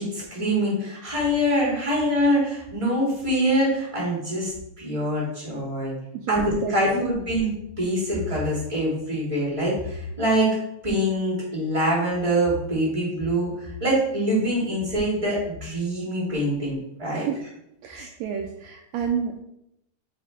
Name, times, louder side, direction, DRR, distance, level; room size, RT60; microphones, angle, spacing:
voice 1, 0.0-5.9 6.3-10.6 10.8-17.3 17.9-18.1, equal, 10° right, -5 dB, 2.5 m, -24 dB
voice 2, 6.1-6.8 7.0-7.1 17.1-17.4 17.8-19.4, right 7 dB, 85° right, 3 dB, 1.5 m, -30 dB
5.5 x 5.0 x 4.7 m, 0.81 s
omnidirectional pair, 3.7 m